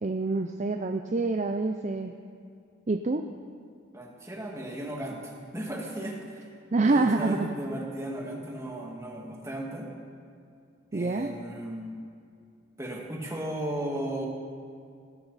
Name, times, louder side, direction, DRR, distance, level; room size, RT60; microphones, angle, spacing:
voice 1, 0.0-2.1 2.9-3.2 6.7-7.5 10.9-11.3, right 3 dB, 35° right, 6 dB, 0.5 m, -26 dB
voice 2, 3.9-6.5 6.8-9.9 10.9-12.0 12.8-14.3, right 1 dB, 15° right, -1 dB, 2.0 m, -35 dB
18.0 x 14.5 x 4.1 m, 2.3 s
head